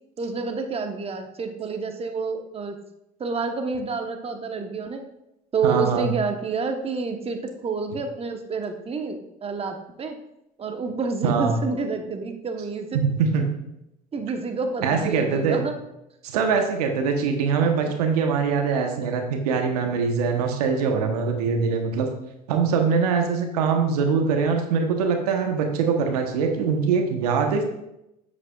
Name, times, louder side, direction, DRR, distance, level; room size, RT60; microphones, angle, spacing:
voice 1, 0.2-2.8 3.2-5.0 5.5-10.1 10.6-13.0 14.1-15.7, right 4 dB, 30° right, 5 dB, 1.1 m, -28 dB
voice 2, 5.6-6.1 11.2-11.6 12.9-13.5 14.8-15.6 16.2-22.1 22.5-27.6, right 5 dB, 80° right, 4 dB, 1.1 m, -23 dB
9.7 x 7.5 x 2.4 m, 0.85 s
hypercardioid pair, 70°, 20 cm